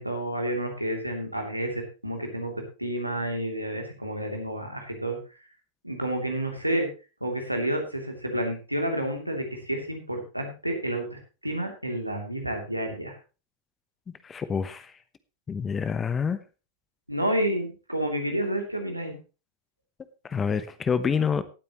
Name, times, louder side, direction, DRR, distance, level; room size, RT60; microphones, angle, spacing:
voice 1, 0.0-5.2 5.8-6.9 7.2-13.2 17.1-19.2, right 1 dB, 90° right, 3 dB, 2.9 m, -30 dB
voice 2, 14.2-14.9 15.5-16.4 20.2-21.4, left 6 dB, 20° left, 13 dB, 0.9 m, -27 dB
18.0 x 8.6 x 3.0 m, 0.32 s
figure-of-eight pair, 90°, 0 cm